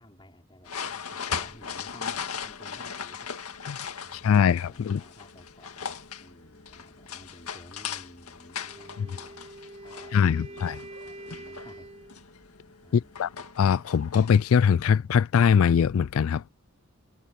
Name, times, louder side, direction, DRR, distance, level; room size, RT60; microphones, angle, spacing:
voice 1, 0.0-3.6 4.0-9.6 9.8-11.9 12.8-13.4, left 1 dB, 20° left, 5.1 m, -53 dB
sound 1, 0.7-14.5, left 6 dB, 90° left, 2.0 m, -39 dB
voice 2, 4.2-5.0 9.0-9.1 10.1-10.8 12.9-13.3 13.6-16.5, left 7 dB, 75° left, 0.3 m, -22 dB
Wind instrument woodwind instrument, 8.6-12.2, right 1 dB, 30° right, 4.9 m, -45 dB
head